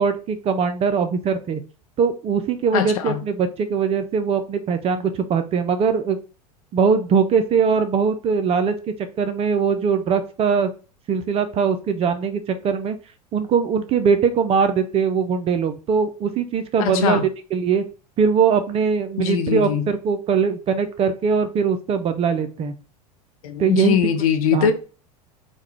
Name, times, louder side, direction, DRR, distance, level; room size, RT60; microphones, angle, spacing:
voice 1, 0.0-1.6 2.0-6.2 6.7-8.7 9.2-10.7 11.1-13.0 13.3-17.8 18.2-22.7 23.6-24.0 24.5-24.7, right 6 dB, 30° right, 0.4 m, -21 dB
voice 2, 2.7-3.2 16.8-17.2 19.2-19.9 23.4-24.7, left 8 dB, 60° left, 0.6 m, -21 dB
3.8 x 2.2 x 3.1 m
figure-of-eight pair, 85°, 20 cm